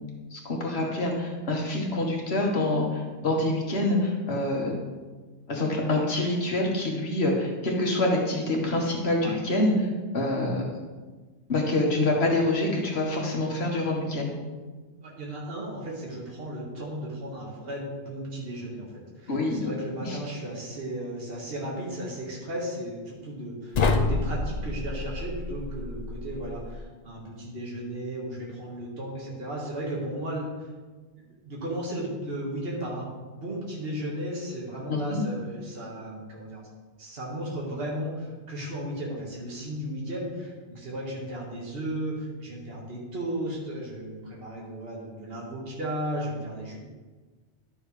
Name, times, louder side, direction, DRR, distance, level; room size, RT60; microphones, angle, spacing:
voice 1, 0.3-4.7 5.5-9.9 10.1-10.6 11.5-14.3 19.3-19.7 20.1-20.2 34.9-35.2, left 2 dB, 65° left, -1 dB, 1.6 m, -26 dB
voice 2, 15.0-30.5 31.4-33.1 33.4-36.6 37.0-46.8, right 1 dB, 60° right, -4 dB, 1.8 m, -35 dB
sound 1, 23.7-26.8, left 3 dB, 50° left, 0.6 m, -28 dB
11.5 x 6.2 x 3.2 m, 1.3 s
omnidirectional pair, 1.2 m